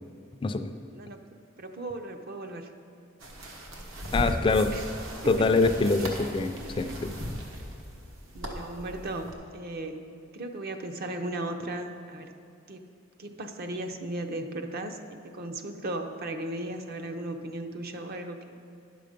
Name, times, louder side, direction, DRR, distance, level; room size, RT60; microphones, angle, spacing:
voice 1, 0.9-1.3 1.6-2.7 4.1-4.8 5.2-5.3 8.3-10.0 10.3-12.3 12.7-12.9 13.2-18.6, right 1 dB, 50° right, 6 dB, 0.6 m, -36 dB
sound 1, 3.2-9.3, equal, 80° right, 1.4 m, -37 dB
voice 2, 4.1-4.7 5.2-7.2, left 3 dB, 25° left, 8 dB, 0.4 m, -25 dB
10.5 x 6.7 x 5.1 m, 2.5 s
head